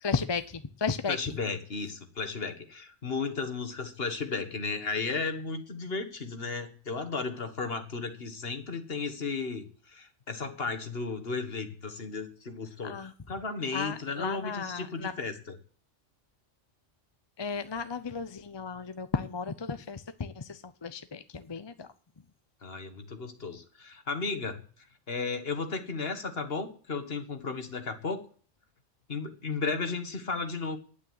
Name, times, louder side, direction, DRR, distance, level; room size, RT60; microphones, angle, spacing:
voice 1, 0.0-1.2 12.8-13.1 13.7-15.1 17.4-21.9, left 5 dB, 30° left, 11 dB, 0.5 m, -34 dB
voice 2, 1.1-15.6 22.6-24.6 25.1-28.2 29.1-30.8, left 4 dB, 50° left, 8 dB, 1.8 m, -34 dB
9.4 x 8.8 x 9.4 m, 0.42 s
omnidirectional pair, 1.3 m